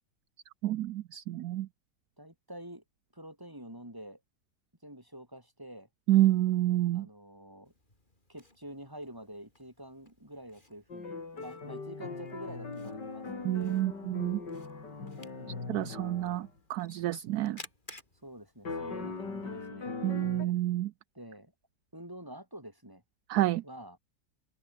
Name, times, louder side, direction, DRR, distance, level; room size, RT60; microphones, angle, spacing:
voice 1, 0.6-1.7 6.1-7.1 13.4-14.4 15.7-17.6 20.0-20.9 23.3-23.6, right 14 dB, 70° right, 1.0 m, -28 dB
voice 2, 2.2-2.8 3.1-4.2 4.8-5.9 6.9-7.7 8.3-13.8 15.3-15.9 18.2-19.9 20.4-20.6 21.1-21.5 21.9-23.0 23.6-24.0, right 1 dB, 10° right, 6.5 m, -47 dB
Camera, 7.6-19.6, left 1 dB, 25° left, 5.0 m, -57 dB
sound 1, 10.9-16.5 18.6-20.5, left 4 dB, 75° left, 4.3 m, -40 dB
open air
omnidirectional pair, 1.9 m